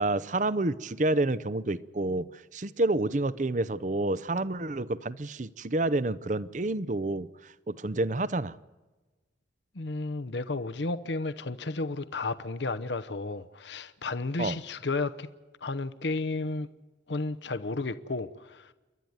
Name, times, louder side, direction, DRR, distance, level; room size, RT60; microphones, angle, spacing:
voice 1, 0.0-8.5 14.4-14.6, right 2 dB, 40° right, 0.7 m, -29 dB
voice 2, 9.7-15.3 15.6-16.7 17.1-18.7, left 3 dB, 70° left, 0.9 m, -32 dB
29.0 x 12.0 x 9.5 m
head